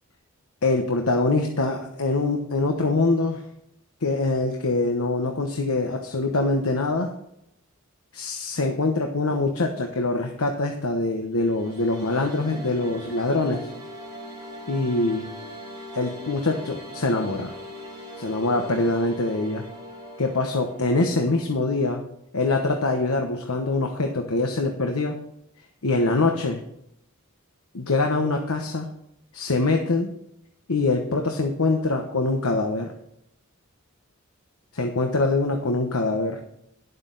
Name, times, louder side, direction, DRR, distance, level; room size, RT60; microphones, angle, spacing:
voice 1, 0.6-3.4 4.0-7.1 8.1-13.7 14.7-15.3 15.9-17.5 18.2-19.6 20.2-22.0 22.3-25.2 25.8-26.6 27.7-28.9 29.3-30.1 30.7-32.9 34.8-36.4, left 2 dB, 90° left, 4 dB, 1.1 m, -24 dB
sound 1, 11.3-21.5, left 1 dB, 15° right, 4.5 m, -40 dB
11.5 x 8.0 x 4.1 m, 0.78 s
head